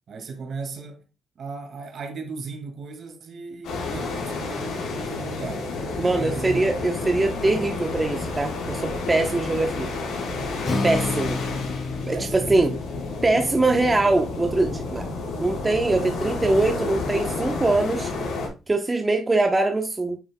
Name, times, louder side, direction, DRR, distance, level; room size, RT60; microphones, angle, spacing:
voice 1, 0.1-1.1 1.4-5.7 6.0-6.7 12.1-12.8, right 4 dB, 55° right, 2.0 m, -36 dB
sound 1, 3.6-18.5, left 3 dB, 75° left, 4.0 m, -30 dB
voice 2, 6.0-9.9 10.8-11.4 12.1-12.7 13.2-15.1 15.4-18.1 18.7-20.2, right 2 dB, 20° right, 0.9 m, -22 dB
Acoustic guitar, 10.6-14.9, left 3 dB, 45° left, 2.3 m, -32 dB
9.1 x 5.6 x 2.2 m
cardioid pair, 90°, 0 cm